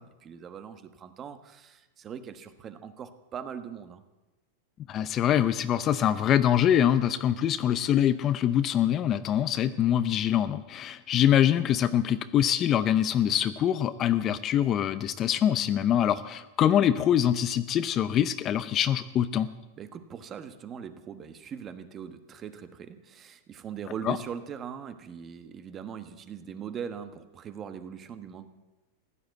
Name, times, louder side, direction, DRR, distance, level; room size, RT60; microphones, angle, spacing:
voice 1, 0.0-4.0 19.8-28.5, right 7 dB, 25° right, 10 dB, 1.2 m, -40 dB
voice 2, 4.9-19.5 24.1-24.2, left 10 dB, 30° left, 13 dB, 0.6 m, -24 dB
15.5 x 11.5 x 8.1 m, 1.1 s
supercardioid pair, 145°, 0 cm